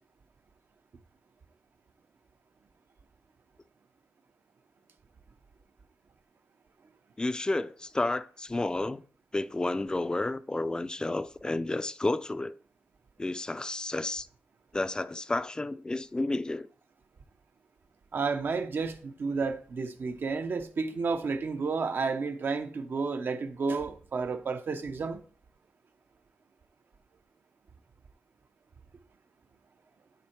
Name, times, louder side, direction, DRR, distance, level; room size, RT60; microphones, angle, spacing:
voice 1, 7.2-9.0 9.3-12.6 13.2-14.3 14.7-16.7, left 2 dB, 20° left, 0.4 m, -31 dB
voice 2, 18.1-25.2, right 4 dB, 60° right, 0.8 m, -31 dB
9.5 x 3.6 x 4.5 m
cardioid pair, 75°, 4 cm